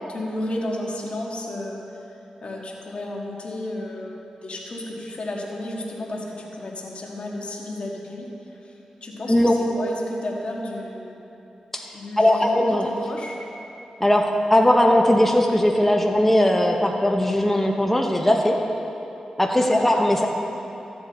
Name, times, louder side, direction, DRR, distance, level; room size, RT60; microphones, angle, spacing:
voice 1, 0.0-1.8 2.4-8.3 8.6-8.7 9.0-11.2 11.9-13.4 19.5-19.8, left 1 dB, 60° left, -2 dB, 1.8 m, -32 dB
voice 2, 12.2-12.9 14.0-18.6 19.4-20.3, left 1 dB, 10° left, 1 dB, 1.0 m, -19 dB
14.0 x 7.7 x 4.3 m, 3.0 s
cardioid pair, 50°, 2 cm